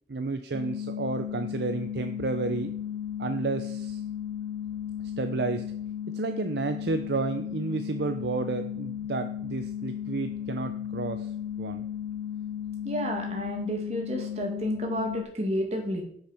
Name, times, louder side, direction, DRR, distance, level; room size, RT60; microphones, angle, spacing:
voice 1, 0.1-2.7 3.2-4.0 5.2-5.7 6.1-11.3 11.6-11.8, right 3 dB, 60° right, 8 dB, 0.5 m, -31 dB
sound 1, 0.5-15.2, left 9 dB, 75° right, 1.9 m, -35 dB
voice 2, 12.8-16.0, equal, 35° right, 2 dB, 1.9 m, -31 dB
8.3 x 6.6 x 4.9 m, 0.64 s
head